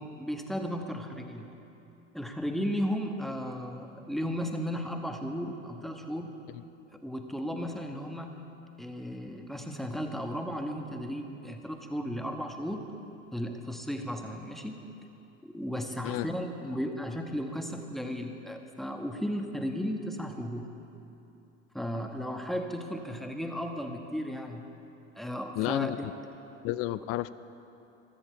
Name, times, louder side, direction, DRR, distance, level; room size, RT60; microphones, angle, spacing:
voice 1, 0.0-1.5 2.1-6.3 6.9-8.4 8.8-12.9 13.3-14.9 15.4-20.7 21.7-24.6 25.1-26.3, equal, ahead, 4 dB, 1.3 m, -35 dB
voice 2, 25.6-26.1 26.6-27.3, left 16 dB, 40° left, 15 dB, 0.4 m, -31 dB
16.0 x 13.5 x 4.5 m, 2.8 s
figure-of-eight pair, 70°, 38 cm